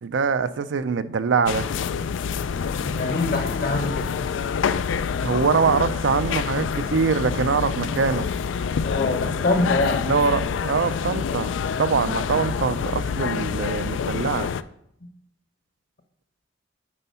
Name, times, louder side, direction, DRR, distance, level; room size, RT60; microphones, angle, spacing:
voice 1, 0.0-1.7 5.2-8.3 10.1-14.5, right 5 dB, 75° right, 12 dB, 0.5 m, -23 dB
sound 1, 1.5-14.6, left 6 dB, 85° left, 0.4 m, -27 dB
voice 2, 2.8-4.3 8.8-10.1, left 2 dB, 55° left, 6 dB, 1.1 m, -25 dB
9.8 x 4.5 x 5.5 m, 0.75 s
head